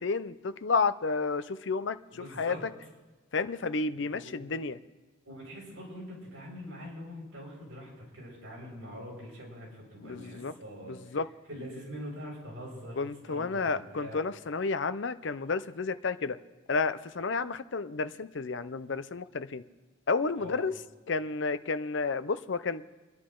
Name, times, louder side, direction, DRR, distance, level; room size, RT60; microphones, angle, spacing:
voice 1, 0.0-2.6 3.3-4.8 10.0-10.5 10.9-11.3 13.0-16.4 16.7-19.6 20.1-20.7 21.1-22.8, left 4 dB, 60° left, 13 dB, 0.6 m, -31 dB
voice 2, 2.1-2.6 3.9-4.7 5.3-11.2 11.5-13.0 13.3-14.2 20.4-20.6, equal, 70° right, -3 dB, 6.4 m, -44 dB
29.5 x 10.5 x 3.8 m, 1.2 s
head